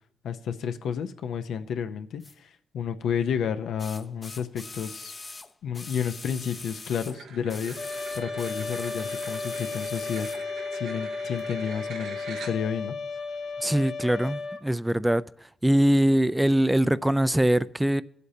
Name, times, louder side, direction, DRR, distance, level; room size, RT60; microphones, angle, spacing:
voice 1, 0.2-5.1 5.6-7.8 8.1-10.3 10.7-13.0, left 7 dB, 80° left, 0.6 m, -31 dB
sound 1, 2.2-2.3 3.8-7.2 7.5-10.4 11.4-11.5, left 3 dB, 35° left, 0.6 m, -42 dB
sound 2, 7.1-12.9, right 5 dB, 85° right, 1.0 m, -43 dB
Trumpet, 7.8-14.6, left 4 dB, 55° left, 1.3 m, -34 dB
voice 2, 13.6-15.2 15.6-18.0, right 1 dB, 10° right, 0.4 m, -22 dB
18.5 x 8.1 x 2.8 m
cardioid pair, 65°, 0 cm